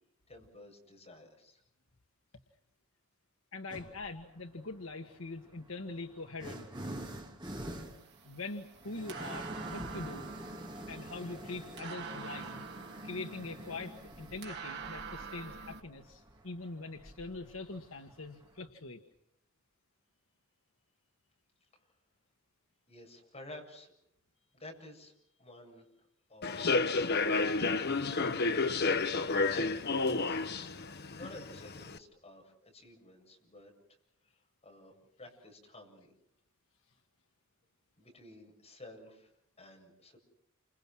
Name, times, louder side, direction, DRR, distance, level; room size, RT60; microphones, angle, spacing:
voice 1, 0.3-1.6 22.9-23.9 24.5-25.1 25.4-25.8 26.3-28.0 29.0-30.5 31.2-33.7 34.6-34.9 35.2-36.1 38.0-39.3 39.6-40.2, left 1 dB, 30° left, 1 dB, 7.5 m, -52 dB
voice 2, 3.5-6.7 8.2-10.3 10.9-12.6 13.0-19.0, left 3 dB, 70° left, 5 dB, 1.6 m, -43 dB
sound 1, 3.7-4.2 5.1-18.6, right 1 dB, 20° right, 3.2 m, -47 dB
sound 2, 7.8-15.8, right 5 dB, 55° right, 2.9 m, -46 dB
Human voice / Subway metro underground, 26.4-32.0, left 3 dB, 50° left, 1.1 m, -31 dB
29.5 x 27.0 x 6.2 m, 0.74 s
head